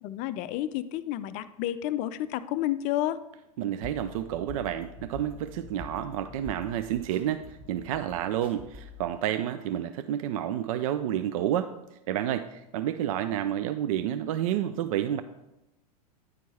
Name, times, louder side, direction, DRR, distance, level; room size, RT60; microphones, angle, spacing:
voice 1, 0.0-3.2, left 13 dB, 35° left, 13 dB, 0.4 m, -30 dB
voice 2, 3.6-7.4 7.7-11.7 12.1-15.2, right 11 dB, 55° right, 11 dB, 0.4 m, -30 dB
sound 1, 3.8-9.1, left 3 dB, 25° right, 1.8 m, -46 dB
9.7 x 4.5 x 4.2 m, 0.91 s
hypercardioid pair, 105°, 21 cm